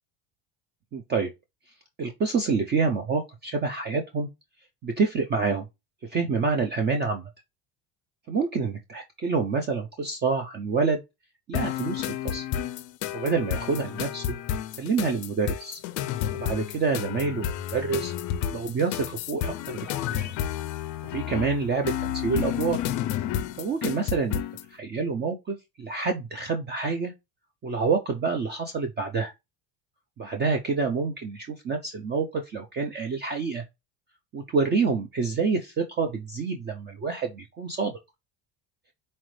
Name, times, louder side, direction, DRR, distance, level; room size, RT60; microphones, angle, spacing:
voice 1, 0.9-1.3 2.0-4.3 4.8-5.7 6.1-7.3 8.3-11.0 11.5-12.4 13.1-14.4 14.8-15.8 16.3-18.1 18.5-20.3 21.1-22.8 23.6-24.4 24.7-27.1 27.6-29.3 30.2-33.6 34.3-38.0, right 4 dB, 25° right, 0.4 m, -27 dB
sound 1, 11.5-24.7, left 10 dB, 50° left, 0.5 m, -31 dB
4.2 x 2.4 x 3.1 m
cardioid pair, 155°, 42 cm